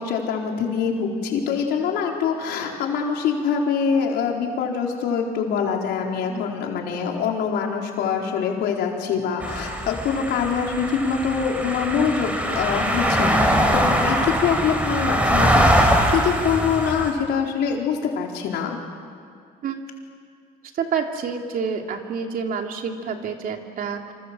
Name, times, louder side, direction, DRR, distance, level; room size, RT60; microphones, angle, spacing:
voice 1, 0.0-18.8, left 6 dB, 75° left, 0 dB, 4.4 m, -24 dB
sound 1, 9.4-17.1, equal, 10° right, 4.6 m, -22 dB
voice 2, 20.8-24.1, right 6 dB, 55° right, 3 dB, 2.9 m, -28 dB
27.0 x 26.5 x 7.7 m, 2.2 s
cardioid pair, 110°, 17 cm